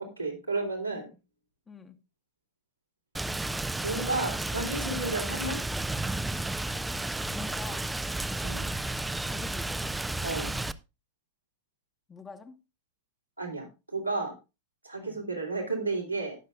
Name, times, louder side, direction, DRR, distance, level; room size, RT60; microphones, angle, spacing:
voice 1, 0.2-1.1 3.8-5.6 8.4-8.7 10.2-10.5 13.4-14.3 14.8-16.3, right 3 dB, 90° right, 3.0 m, -32 dB
voice 2, 1.7-2.0 7.2-8.0 9.2-10.0 12.1-12.6 15.0-15.2, left 5 dB, 15° left, 1.1 m, -45 dB
Rain, 3.1-10.7, right 2 dB, 5° right, 0.5 m, -32 dB
19.5 x 6.7 x 2.5 m
figure-of-eight pair, 90°, 0 cm